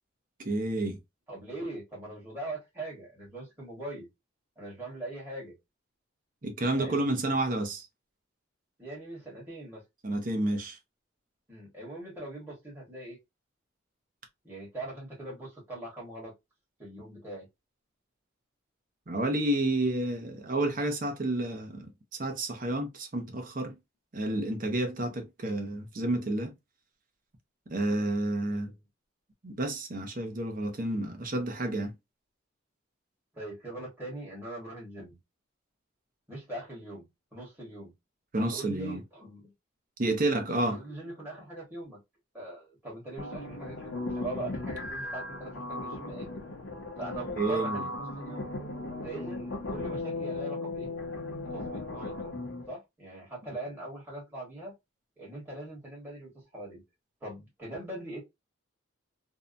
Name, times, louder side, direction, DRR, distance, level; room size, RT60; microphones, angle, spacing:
voice 1, 0.4-1.0 6.4-7.9 10.0-10.8 19.1-21.9 22.2-23.8 24.1-26.5 27.7-28.7 29.4-31.9 38.3-39.0 40.0-40.8 47.4-47.9, right 1 dB, 40° right, 0.6 m, -30 dB
voice 2, 1.3-4.1 4.6-5.5 6.8-7.0 8.8-9.8 11.5-13.2 14.4-16.3 16.8-17.5 28.5-28.8 33.3-35.2 36.3-37.0 37.3-37.9 38.3-39.5 40.4-42.0 42.3-46.4 47.0-48.5 49.0-50.9 51.5-52.4 52.7-54.7 55.2-56.8 57.2-58.2, right 1 dB, 10° right, 1.2 m, -41 dB
sound 1, 43.2-52.7, left 2 dB, 65° left, 0.7 m, -37 dB
2.7 x 2.1 x 2.4 m
head